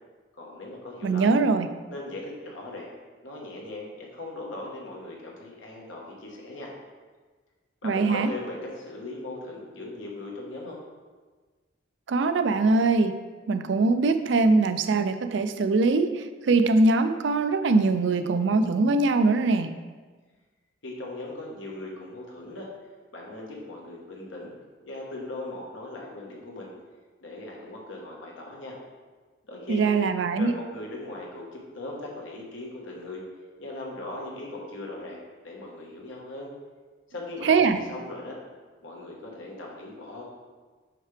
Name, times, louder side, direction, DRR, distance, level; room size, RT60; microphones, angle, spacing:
voice 1, 0.4-1.3 1.9-2.9 3.2-6.7 7.8-10.8 20.8-22.7 23.1-24.5 24.8-26.7 27.2-28.8 29.4-29.9 30.4-33.2 33.6-36.5 37.1-38.4 38.8-40.2, left 2 dB, 85° left, -2 dB, 1.3 m, -39 dB
voice 2, 1.0-1.7 7.8-8.3 12.1-13.2 13.5-19.7 29.7-30.5 37.4-37.8, right 3 dB, 70° right, 9 dB, 0.4 m, -22 dB
5.8 x 5.7 x 3.3 m, 1.4 s
head